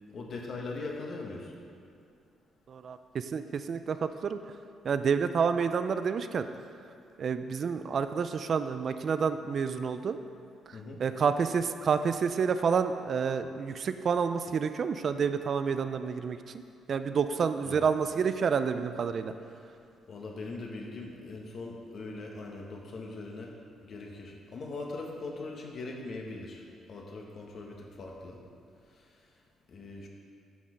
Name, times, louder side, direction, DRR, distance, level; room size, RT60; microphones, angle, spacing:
voice 1, 0.1-1.5 10.7-11.0 17.6-17.8 20.1-26.6 26.9-28.4 28.9-29.1 29.7-30.1, left 3 dB, 55° left, 0 dB, 1.5 m, -41 dB
voice 2, 2.7-4.4 4.8-6.5 7.2-10.2 11.0-16.4 16.9-19.3, right 6 dB, 55° right, 10 dB, 0.4 m, -29 dB
9.4 x 6.4 x 5.2 m, 2.5 s
cardioid pair, 90°, 0 cm